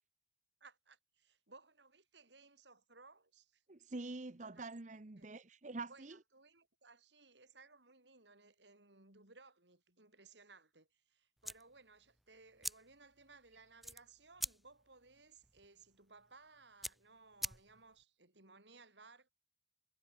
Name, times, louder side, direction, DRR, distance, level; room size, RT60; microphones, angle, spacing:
voice 1, 0.6-3.6 4.5-4.7 5.2-5.3 5.9-19.3, right 3 dB, 85° right, 7.4 m, -62 dB
voice 2, 3.7-6.2, right 3 dB, 45° right, 1.0 m, -46 dB
sound 1, 11.4-18.0, equal, ahead, 1.8 m, -47 dB
head